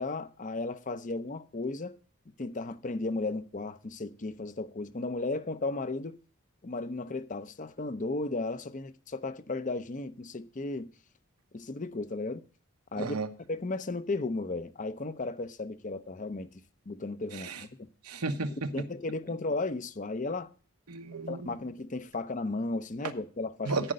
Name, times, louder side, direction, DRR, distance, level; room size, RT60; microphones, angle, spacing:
voice 1, 0.0-1.9 2.4-6.2 6.6-10.9 11.5-12.4 12.9-13.2 13.5-16.5 16.9-17.7 18.7-20.5 21.3-23.7, left 3 dB, 35° left, 0.6 m, -34 dB
voice 2, 13.0-13.3 17.3-17.6 18.0-18.7 20.9-21.5 23.7-23.9, right 3 dB, 85° right, 1.1 m, -33 dB
13.0 x 5.2 x 6.5 m
head